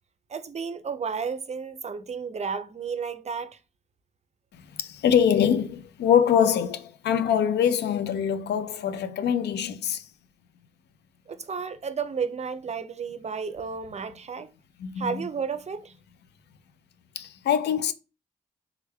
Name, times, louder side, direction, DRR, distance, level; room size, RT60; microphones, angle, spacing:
voice 1, 0.3-3.6 11.3-14.5 15.0-15.9, right 6 dB, 40° right, 0.5 m, -32 dB
voice 2, 4.5-10.1 14.8-15.3 17.2-17.9, left 8 dB, 80° left, 0.4 m, -24 dB
3.4 x 3.3 x 2.2 m
supercardioid pair, 50°, 17 cm